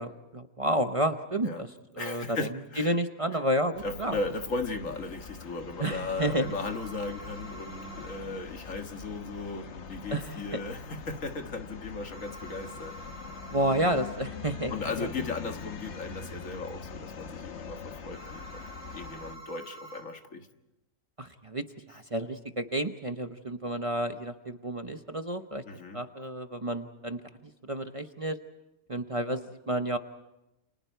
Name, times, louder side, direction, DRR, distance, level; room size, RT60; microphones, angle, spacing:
voice 1, 0.0-1.7 2.0-2.4 2.8-4.2 5.8-6.5 10.1-10.4 13.5-14.7 15.0-15.1 21.2-25.6 25.9-28.4 28.9-30.0, right 1 dB, 30° right, 7 dB, 0.9 m, -30 dB
voice 2, 2.0-2.9 3.8-13.0 13.2-13.3 14.7-20.5 25.7-26.0, left 3 dB, 75° left, 5 dB, 2.1 m, -37 dB
sound 1, 3.7-19.4, left 5 dB, 60° left, 1.3 m, -43 dB
sound 2, 6.1-8.2 12.1-14.2 18.1-20.0, right 2 dB, 10° left, 7.5 m, -47 dB
29.5 x 29.0 x 4.6 m, 0.95 s
omnidirectional pair, 1.4 m